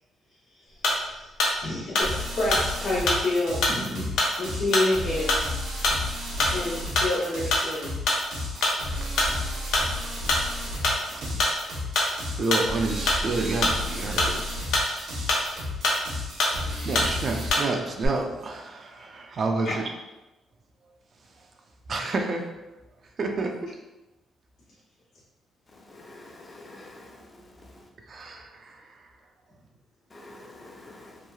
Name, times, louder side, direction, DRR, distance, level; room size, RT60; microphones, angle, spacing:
sound 1, 0.8-1.1 1.4-1.6 1.9-2.7 3.1-3.3 3.6-3.8 4.2-4.3 4.7-4.9 5.3-5.5 5.8-6.0 6.4-6.6 7.0-7.2 7.5-7.7 8.1-8.2 8.6-8.8 9.2-9.3 9.7-9.9 10.3-10.5 10.8-11.0 11.4-11.6 11.9-12.1 12.5-12.7 13.1-13.2 13.6-14.3 14.7-14.9 15.3-15.5 15.8-16.1 16.4-16.6 16.9-17.1 17.5-17.7 17.9-18.1, left 2 dB, 85° left, 0.7 m, -24 dB
voice 1, 1.6-4.1 4.4-5.4 6.5-8.0 19.6-19.7, left 2 dB, 65° left, -10 dB, 1.0 m, -28 dB
sound 2, 2.0-17.5, left 1 dB, 75° right, 0.9 m, -33 dB
voice 2, 10.6-11.4 12.1-14.4 14.7-15.2 15.5-16.3 16.6-19.8 21.9-22.5 23.2-23.7 28.1-29.1, right 3 dB, 50° right, 3 dB, 0.4 m, -31 dB
voice 3, 25.9-27.3 27.6-27.7 30.1-31.2, left 2 dB, 30° left, 0 dB, 0.5 m, -47 dB
3.0 x 2.3 x 2.3 m, 1.0 s
cardioid pair, 90°, 0 cm